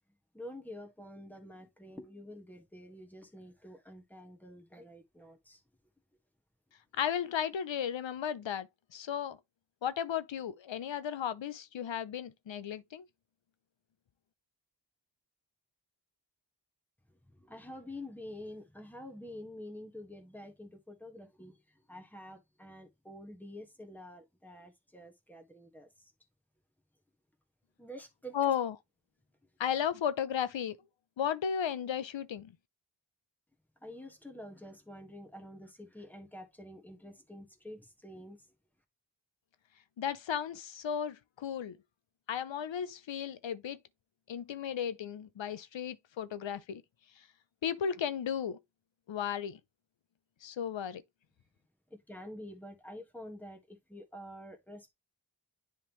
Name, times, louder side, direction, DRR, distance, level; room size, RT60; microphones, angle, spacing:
voice 1, 0.3-5.6 17.2-26.1 27.8-28.5 33.8-38.5 51.9-54.9, left 1 dB, 5° left, 1.6 m, -48 dB
voice 2, 7.0-9.4 9.8-13.0 28.3-28.7 29.6-30.8 31.2-32.5 40.0-41.8 42.3-43.8 44.3-46.8 47.2-47.3 47.6-48.6 49.1-49.6 50.4-51.0, left 8 dB, 85° left, 0.6 m, -34 dB
10.0 x 3.7 x 3.0 m
wide cardioid pair, 75°, 44 cm